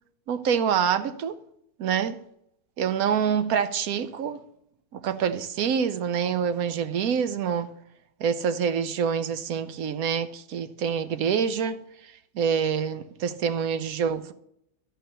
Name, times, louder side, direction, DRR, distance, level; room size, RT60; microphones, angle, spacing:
voice 1, 0.3-1.3 1.8-2.2 2.8-4.4 4.9-7.7 8.2-11.8 12.3-14.3, right 7 dB, 80° right, 1.2 m, -26 dB
13.0 x 4.6 x 6.6 m
omnidirectional pair, 1.6 m